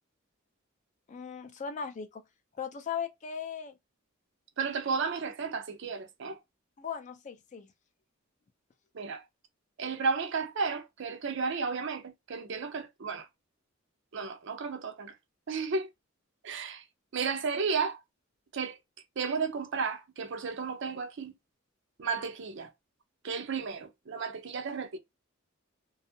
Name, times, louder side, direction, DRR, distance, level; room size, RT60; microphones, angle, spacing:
voice 1, 1.1-2.2 2.6-3.7 6.8-7.7, left 7 dB, 35° left, 0.4 m, -38 dB
voice 2, 4.6-6.4 8.9-9.2 9.8-13.3 14.1-15.1 15.5-15.9 16.4-16.8 17.1-18.0 18.5-18.8 19.2-21.3 22.0-22.7 23.2-25.0, right 5 dB, 65° right, 0.5 m, -33 dB
2.5 x 2.4 x 2.6 m
head